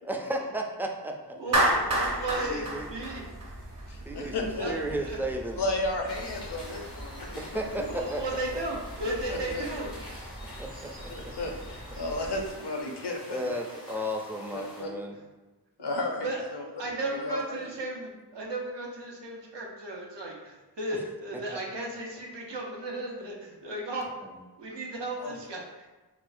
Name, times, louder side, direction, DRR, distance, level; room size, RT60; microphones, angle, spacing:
voice 1, 0.0-1.4 2.4-2.9 4.1-5.6 7.4-8.2 10.6-11.3 13.3-15.2 20.9-21.0 24.2-24.3, right 1 dB, 5° right, 1 dB, 0.3 m, -34 dB
voice 2, 1.4-3.2 4.6-5.2 7.9-9.9 15.1-15.2 16.2-24.0 24.6-25.9, right 1 dB, 80° right, -2 dB, 0.7 m, -35 dB
Clapping, 1.5-3.8, right 1 dB, 40° right, 0.7 m, -26 dB
sound 1, 1.5-12.5, right 1 dB, 65° right, 1.1 m, -44 dB
voice 3, 3.9-4.7 5.6-7.5 9.3-9.6 11.1-13.4 14.5-14.9 15.8-16.6 17.0-17.7 25.2-25.3, left 2 dB, 70° left, 2 dB, 0.6 m, -33 dB
sound 2, 6.1-14.8, left 1 dB, 85° left, 1.3 m, -46 dB
4.3 x 2.1 x 2.5 m, 1.2 s
wide cardioid pair, 50°, 42 cm